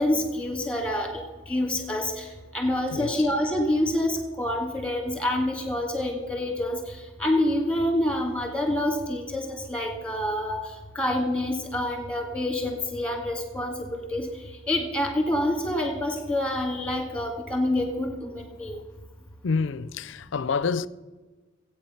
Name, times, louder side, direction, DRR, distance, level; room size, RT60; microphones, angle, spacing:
voice 1, 0.0-6.8 7.2-10.6 11.0-14.3 14.7-18.8, left 1 dB, 5° left, 2.0 m, -27 dB
voice 2, 2.9-3.2 19.4-20.9, left 5 dB, 65° left, 0.4 m, -27 dB
15.5 x 8.8 x 5.8 m
head